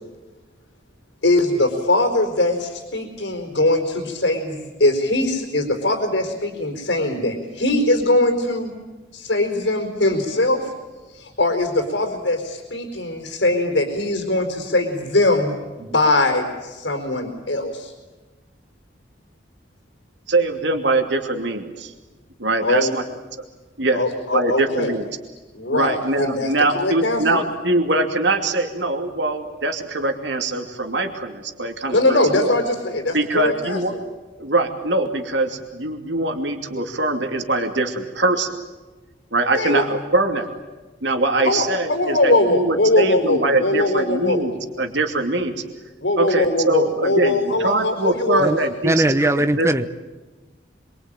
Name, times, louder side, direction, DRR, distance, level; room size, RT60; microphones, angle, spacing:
voice 1, 1.2-8.7 9.1-10.7 11.1-17.9 22.6-22.9 23.9-24.9 25.5-27.4 31.9-33.8 39.6-39.8 41.4-44.4 46.0-48.4, left 2 dB, 80° left, 4.8 m, -21 dB
voice 2, 20.3-21.9 22.4-23.0 23.8-24.0 24.3-25.1 25.7-32.5 33.1-33.9 34.4-38.6 39.3-40.5 41.0-45.6 46.2-49.7, right 2 dB, 85° right, 2.6 m, -22 dB
voice 3, 48.8-49.9, right 1 dB, 15° right, 0.9 m, -19 dB
27.0 x 23.5 x 9.0 m
head